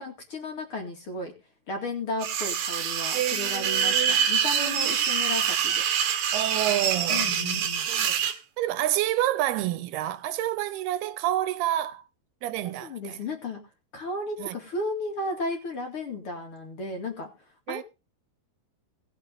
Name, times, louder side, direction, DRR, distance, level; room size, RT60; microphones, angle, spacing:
voice 1, 0.0-1.3 1.7-5.8 7.1-7.9 12.6-13.6 13.9-17.3 17.7-17.8, left 2 dB, 40° left, 2.7 m, -34 dB
sound 1, 2.2-8.4, right 8 dB, 65° right, 2.9 m, -25 dB
voice 2, 3.1-4.2 4.5-5.0 6.3-8.2 8.6-12.0 12.4-13.2 14.4-14.6 17.7-17.8, right 13 dB, 85° right, 3.0 m, -29 dB
19.0 x 6.5 x 5.4 m
omnidirectional pair, 4.4 m